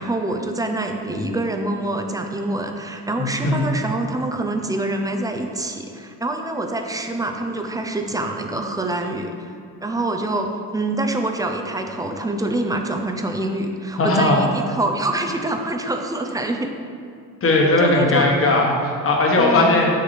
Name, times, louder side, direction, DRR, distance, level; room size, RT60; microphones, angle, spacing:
voice 1, 0.0-9.3 9.8-16.7 17.8-18.3 19.4-19.8, right 2 dB, 10° right, 4 dB, 0.5 m, -25 dB
voice 2, 3.2-3.6 14.0-14.4 17.4-19.9, left 2 dB, 35° left, -1 dB, 1.4 m, -18 dB
7.1 x 6.8 x 3.3 m, 2.4 s
cardioid pair, 120°, 40 cm